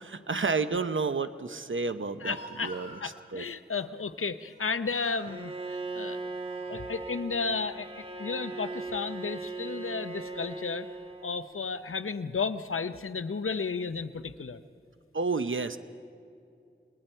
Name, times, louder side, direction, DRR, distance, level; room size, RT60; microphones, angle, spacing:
voice 1, 0.0-2.4 2.6-3.0 3.3-3.4 15.1-15.8, right 4 dB, 70° right, 10 dB, 0.9 m, -30 dB
Speech, 2.0-3.1 4.4-4.7 4.9-5.3 6.0-6.8, right 1 dB, 55° right, 5.9 m, -48 dB
voice 2, 2.2-6.3 6.7-10.9 11.2-14.6, left 4 dB, 90° left, 11 dB, 0.7 m, -33 dB
Bowed string instrument, 5.3-11.5, right 3 dB, 25° right, 1.8 m, -38 dB
30.0 x 20.0 x 4.5 m, 2.5 s
wide cardioid pair, 45°, 21 cm